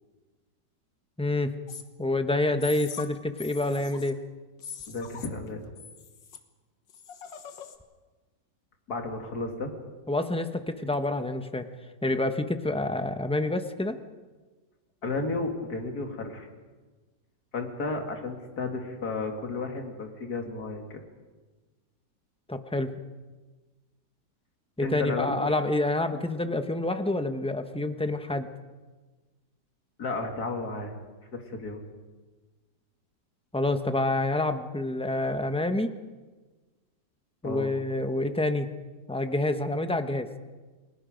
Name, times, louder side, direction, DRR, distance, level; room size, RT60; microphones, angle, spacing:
voice 1, 1.2-1.5 2.0-4.2 10.1-11.7 12.0-14.0 22.5-22.9 24.8-28.5 33.5-35.9 37.4-38.7 39.1-40.3, left 2 dB, 5° left, 8 dB, 0.6 m, -27 dB
sound 1, 1.7-1.8 2.6-3.1 3.4-4.2 4.6-5.5 5.8-6.4 6.9-7.8, left 8 dB, 85° left, 2.0 m, -42 dB
voice 2, 4.9-5.7 8.9-9.7 15.0-16.5 17.5-21.0 24.8-25.5 30.0-30.9 31.3-31.8 37.4-37.7, left 3 dB, 55° left, 3 dB, 2.9 m, -33 dB
29.0 x 21.0 x 5.2 m, 1.3 s
omnidirectional pair, 1.9 m